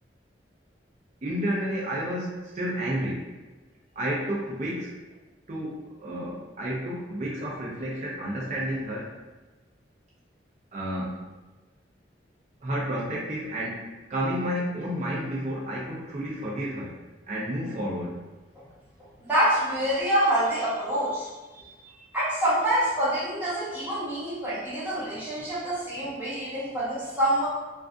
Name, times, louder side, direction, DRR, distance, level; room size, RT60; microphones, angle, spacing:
voice 1, 1.2-3.3 4.0-4.9 5.5-9.1 10.7-11.2 12.6-17.0 17.3-18.2, equal, 40° right, -5 dB, 0.5 m, -31 dB
voice 2, 19.0-21.8 22.1-27.5, right 1 dB, 10° right, -10 dB, 0.8 m, -26 dB
2.4 x 2.3 x 2.4 m, 1.2 s
head